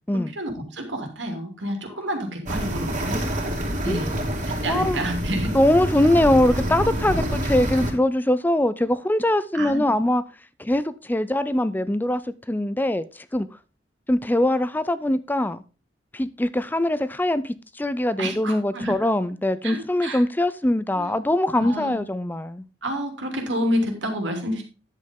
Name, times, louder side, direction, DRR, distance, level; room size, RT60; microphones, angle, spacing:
voice 1, 0.1-3.2 3.8-4.1 4.5-5.6 9.5-9.9 18.2-19.0 19.6-20.2 20.9-21.1 21.5-22.0 22.8-24.6, equal, 85° right, 2.8 m, -29 dB
sound 1, 2.4-7.9, equal, 45° right, 2.8 m, -27 dB
voice 2, 4.7-5.0 5.5-10.2 10.6-12.2 12.5-13.1 13.3-13.5 14.1-15.6 16.1-22.6, left 1 dB, 10° left, 0.4 m, -22 dB
10.5 x 7.8 x 3.6 m
head